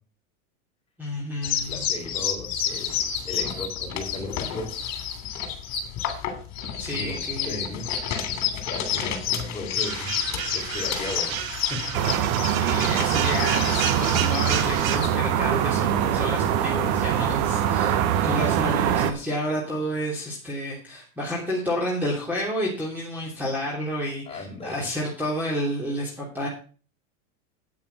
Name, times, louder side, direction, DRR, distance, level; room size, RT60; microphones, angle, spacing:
voice 1, 1.0-1.8 6.8-7.7 12.5-17.9 18.2-26.5, equal, 5° right, -3 dB, 3.0 m, -30 dB
sound 1, 1.4-15.2, left 8 dB, 40° left, 3.1 m, -30 dB
voice 2, 1.7-4.9 6.9-8.0 8.6-11.8 17.6-18.0 24.2-24.8, left 2 dB, 15° left, 0 dB, 4.6 m, -37 dB
sound 2, 9.8-15.0, right 9 dB, 75° right, 1.6 m, -31 dB
sound 3, 11.9-19.1, right 10 dB, 55° right, 1.4 m, -23 dB
9.1 x 8.7 x 5.7 m, 0.38 s
supercardioid pair, 115°, 41 cm